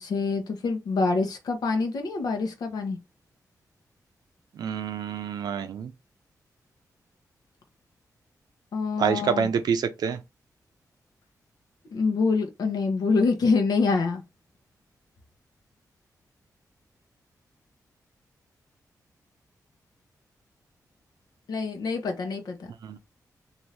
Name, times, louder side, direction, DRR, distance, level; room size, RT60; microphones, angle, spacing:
voice 1, 0.0-3.0 8.7-9.5 11.9-14.2 21.5-22.7, left 4 dB, 80° left, 0.8 m, -26 dB
voice 2, 4.6-5.9 9.0-10.2 22.8-23.0, right 7 dB, 85° right, 0.5 m, -27 dB
2.7 x 2.6 x 3.2 m
wide cardioid pair, 130°, 7 cm